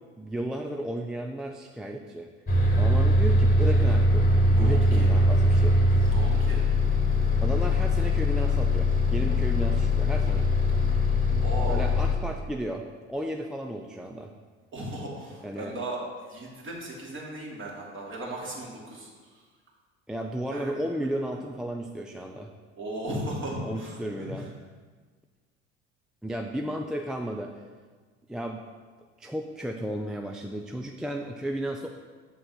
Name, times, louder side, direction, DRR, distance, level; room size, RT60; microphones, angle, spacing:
voice 1, 0.2-2.3 2.7-5.8 7.4-10.5 11.7-14.3 15.4-15.8 20.1-22.5 23.6-24.5 26.2-27.5 28.3-28.6 29.2-31.9, right 1 dB, ahead, 2 dB, 0.3 m, -34 dB
Bus, 2.5-12.1, left 1 dB, 25° left, 1.3 m, -22 dB
voice 2, 4.5-5.1 6.1-6.6 11.4-11.9 14.7-16.0 16.3-19.4 20.5-20.7 21.1-21.3 22.8-24.5, right 1 dB, 35° right, -3 dB, 2.3 m, -36 dB
7.8 x 3.8 x 5.8 m, 1.5 s
hypercardioid pair, 65°, 35 cm